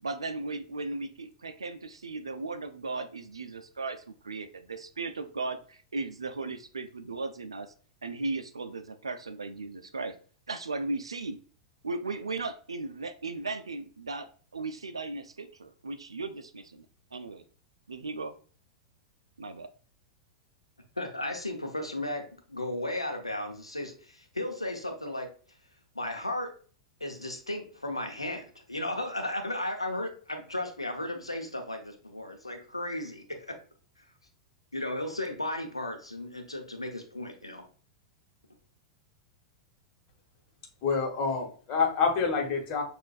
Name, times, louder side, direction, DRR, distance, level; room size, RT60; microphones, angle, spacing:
voice 1, 0.0-7.7 8.0-10.2 10.5-11.4 11.8-16.9 17.1-17.4 17.9-18.3 19.4-19.7, right 3 dB, 80° right, 10 dB, 0.4 m, -36 dB
voice 2, 21.0-25.3 25.9-26.5 27.0-33.6 34.7-37.6, left 1 dB, 90° left, 4 dB, 0.7 m, -35 dB
voice 3, 40.8-42.8, left 5 dB, 40° left, 2 dB, 1.2 m, -27 dB
6.6 x 2.5 x 2.3 m, 0.41 s
figure-of-eight pair, 95°, 3 cm